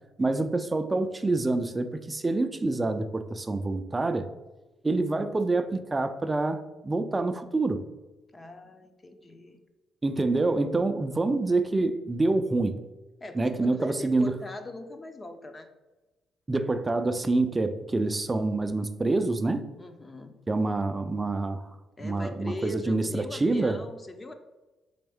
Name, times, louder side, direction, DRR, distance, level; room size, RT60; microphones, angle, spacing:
voice 1, 0.2-4.3 4.8-7.8 10.0-12.8 13.3-14.3 16.5-19.7 20.5-21.7 22.0-23.8, right 2 dB, 20° right, 0.3 m, -27 dB
voice 2, 8.3-9.6 13.2-15.7 19.8-20.3 22.0-24.3, left 2 dB, 25° left, 0.6 m, -40 dB
4.2 x 3.5 x 3.5 m
cardioid pair, 90°, 0 cm